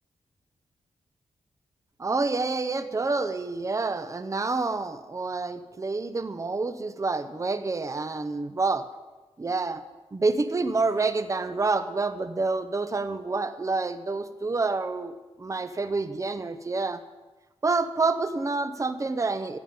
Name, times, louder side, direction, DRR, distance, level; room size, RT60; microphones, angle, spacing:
voice 1, 2.0-8.8 9.4-9.8 10.1-17.0 17.6-19.6, right 3 dB, 30° right, 10 dB, 0.9 m, -28 dB
14.5 x 7.2 x 8.8 m, 1.1 s
wide cardioid pair, 95°, 11 cm